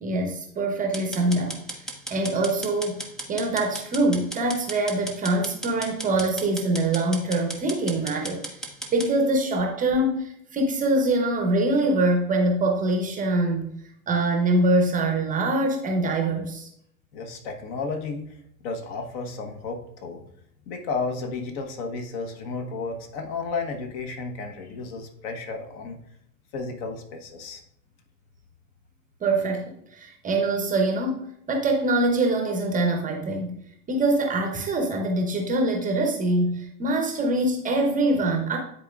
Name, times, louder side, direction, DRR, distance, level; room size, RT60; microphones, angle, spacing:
voice 1, 0.0-1.6 2.1-3.0 3.3-8.4 8.9-13.7 14.1-16.7 29.2-33.6 33.9-38.6, right 2 dB, 20° right, 3 dB, 0.7 m, -24 dB
sound 1, 0.9-9.1, right 1 dB, ahead, 0.3 m, -36 dB
voice 2, 17.1-18.3 18.6-20.3 20.7-26.0 26.5-27.6, left 4 dB, 45° left, 4 dB, 1.1 m, -33 dB
10.0 x 4.1 x 2.4 m, 0.72 s
figure-of-eight pair, 90°, 46 cm